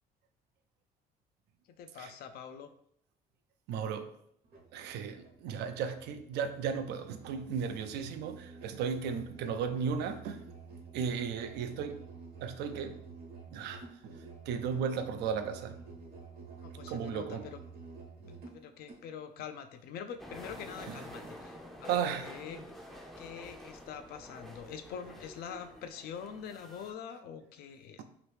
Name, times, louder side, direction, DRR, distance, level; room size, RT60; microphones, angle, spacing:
voice 1, 1.8-2.7 16.6-17.6 18.5-22.6 23.2-28.0, left 7 dB, 65° left, 8 dB, 0.4 m, -45 dB
voice 2, 3.7-4.1 4.7-10.4 10.9-12.0 12.4-13.0 13.5-14.1 14.5-15.8 16.9-17.4 20.9-21.0 21.8-22.4, right 7 dB, 80° right, 8 dB, 0.4 m, -35 dB
Musical instrument, 4.4-19.1, right 4 dB, 65° right, 0.9 m, -50 dB
sound 1, 20.2-26.9, left 1 dB, ahead, 0.4 m, -48 dB
2.9 x 2.6 x 3.3 m, 0.69 s
cardioid pair, 110°, 17 cm